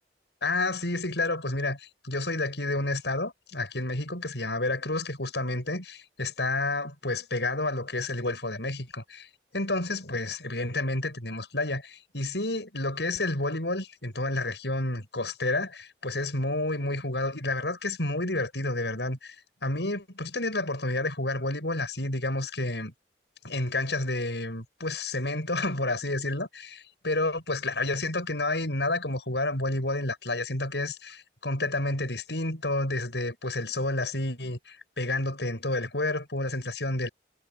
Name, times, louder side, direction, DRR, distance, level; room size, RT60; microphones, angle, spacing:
voice 1, 0.4-9.3 9.5-19.4 19.6-22.9 23.4-26.8 27.0-37.1, left 2 dB, 80° left, 7.6 m, -30 dB
head